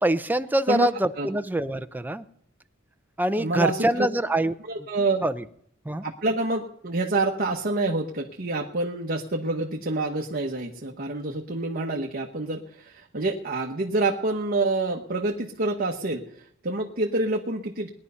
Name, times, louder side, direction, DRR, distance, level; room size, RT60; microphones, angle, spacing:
voice 1, 0.0-2.2 3.2-4.5 5.2-5.4 5.9-6.0, right 1 dB, 10° right, 10 dB, 0.6 m, -24 dB
voice 2, 3.4-4.1 4.7-5.3 6.0-17.9, right 2 dB, 45° right, 1 dB, 1.2 m, -27 dB
19.5 x 10.5 x 5.6 m, 0.68 s
head